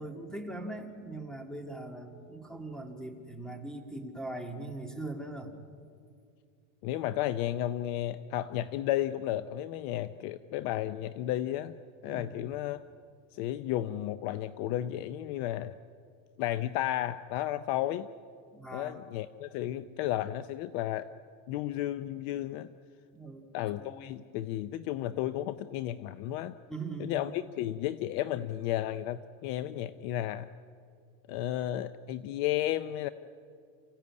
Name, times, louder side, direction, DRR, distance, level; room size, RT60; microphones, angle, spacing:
voice 1, 0.0-5.5 12.0-12.5 18.5-18.9 23.1-23.4 23.8-24.1 26.7-27.2, right 2 dB, ahead, 4 dB, 2.1 m, -41 dB
voice 2, 6.8-11.8 12.0-12.8 13.3-15.8 16.4-18.1 18.7-21.1 21.5-22.7 23.5-26.6 27.0-30.5 31.3-33.1, left 13 dB, 45° left, 14 dB, 0.6 m, -33 dB
29.0 x 15.5 x 9.6 m, 2.3 s
supercardioid pair, 150°, 39 cm